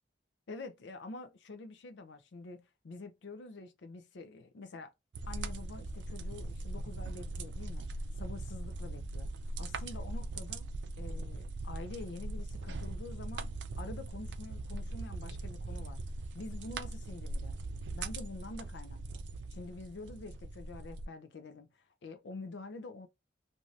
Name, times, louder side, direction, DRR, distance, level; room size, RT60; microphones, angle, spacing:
voice 1, 0.5-4.9 5.3-9.3 9.6-10.7 11.0-16.0 16.3-17.6 17.9-19.2 19.5-23.1, left 3 dB, 80° left, 0.5 m, -47 dB
sound 1, 5.1-21.1, right 2 dB, 80° right, 0.4 m, -40 dB
2.6 x 2.6 x 3.1 m
head